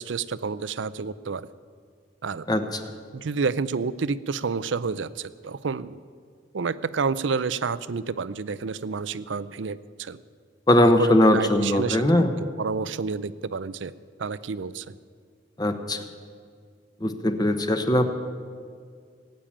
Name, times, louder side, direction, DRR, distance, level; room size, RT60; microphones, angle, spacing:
voice 1, 0.0-1.5 2.2-2.5 3.1-6.0 6.5-10.2 10.8-13.9 14.2-15.0, right 5 dB, 85° right, 17 dB, 0.5 m, -29 dB
voice 2, 2.5-2.8 10.7-12.3 15.6-16.0 17.0-18.1, left 1 dB, 20° left, 8 dB, 1.0 m, -20 dB
18.0 x 9.0 x 8.6 m, 2.1 s
head